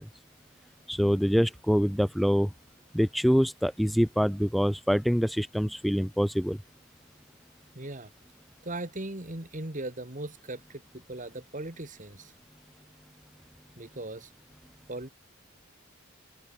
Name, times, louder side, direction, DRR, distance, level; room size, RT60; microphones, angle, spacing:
voice 1, 0.9-2.5 2.9-6.6, equal, ahead, 1.2 m, -25 dB
voice 2, 7.7-8.1 8.6-12.3 13.8-14.3 14.9-15.1, right 2 dB, 35° right, 2.3 m, -38 dB
head